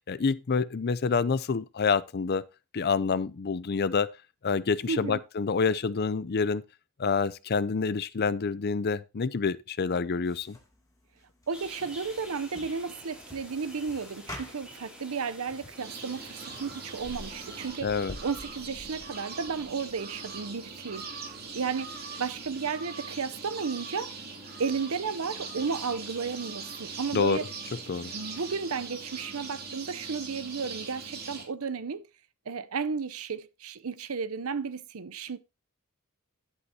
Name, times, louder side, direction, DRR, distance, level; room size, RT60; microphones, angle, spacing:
voice 1, 0.1-2.5 2.7-4.1 4.4-6.6 7.0-10.6 17.8-18.2 27.1-27.4 27.9-28.1, left 5 dB, 50° left, 0.5 m, -27 dB
voice 2, 4.9-5.2 11.5-17.9 18.2-21.1 21.5-21.9 22.2-24.2 24.6-27.4 28.1-32.1 32.5-35.4, right 5 dB, 85° right, 0.7 m, -33 dB
sound 1, 10.2-22.7, left 1 dB, 15° left, 2.5 m, -50 dB
sound 2, 11.5-17.7, equal, 5° right, 3.6 m, -48 dB
sound 3, 15.8-31.4, right 4 dB, 45° right, 2.5 m, -41 dB
11.0 x 8.2 x 2.8 m
head